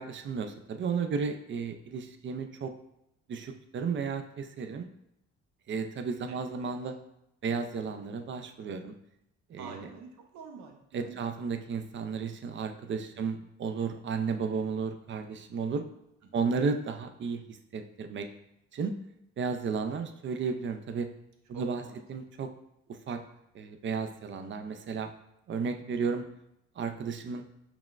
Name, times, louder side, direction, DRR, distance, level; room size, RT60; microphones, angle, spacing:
voice 1, 0.0-2.7 3.3-4.9 5.7-7.0 7.4-8.9 9.5-9.9 10.9-15.9 16.3-18.3 18.7-18.9 19.4-21.1 21.5-21.8 22.1-22.5 22.9-23.2 23.5-25.1 25.5-26.3 26.8-27.4, right 5 dB, 40° right, 7 dB, 0.4 m, -33 dB
voice 2, 6.3-6.7 9.6-11.2 13.1-13.5 16.2-16.7 21.5-22.0, right 5 dB, 70° right, 3 dB, 0.7 m, -48 dB
5.9 x 2.2 x 2.4 m, 0.82 s
cardioid pair, 90°, 30 cm